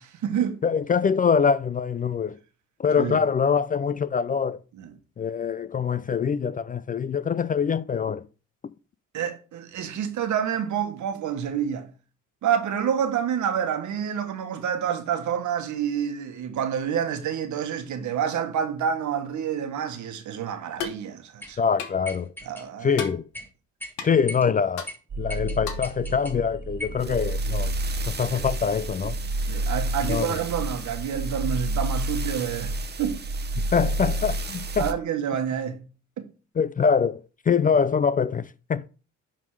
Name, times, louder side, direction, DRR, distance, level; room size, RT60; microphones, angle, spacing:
voice 1, 0.0-0.6 3.0-3.2 4.8-4.9 9.1-11.9 12.4-21.6 22.4-23.0 27.1-27.2 28.3-28.4 29.5-33.2 34.8-35.8 36.2-36.3, right 8 dB, 70° right, 1.4 m, -28 dB
voice 2, 0.6-2.4 2.8-4.6 5.2-8.2 21.6-22.3 22.8-23.2 24.0-24.9 25.2-27.7 28.1-29.2 30.1-30.3 33.6-34.9 36.6-37.2 37.5-38.9, left 6 dB, 30° left, 0.3 m, -24 dB
sound 1, 20.8-21.0 21.8-22.0 22.9-23.2 24.0-24.1 24.8-24.9 25.7-25.9, left 7 dB, 85° left, 1.3 m, -33 dB
sound 2, 21.4-21.6 22.0-22.7 23.0-23.5 23.8-23.9 24.3-24.5 24.9-25.0 25.3-26.4 26.8-27.0, left 1 dB, 5° left, 1.6 m, -38 dB
sound 3, 25.1-34.9, right 1 dB, 35° right, 1.0 m, -30 dB
10.5 x 3.7 x 4.8 m
cardioid pair, 90°, 30 cm